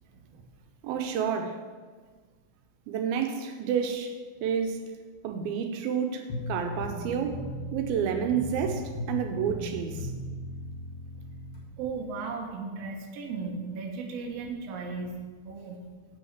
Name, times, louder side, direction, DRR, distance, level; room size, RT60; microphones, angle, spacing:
voice 1, 0.8-1.6 2.9-4.1 4.4-4.8 5.2-7.4 7.7-10.1, right 7 dB, 80° right, 5 dB, 2.5 m, -29 dB
sound 1, 6.3-11.6, left 1 dB, 30° left, 0.8 m, -37 dB
voice 2, 11.8-15.2 15.4-15.8, right 4 dB, 65° right, 1 dB, 1.7 m, -36 dB
7.8 x 6.1 x 7.2 m, 1.5 s
omnidirectional pair, 4.3 m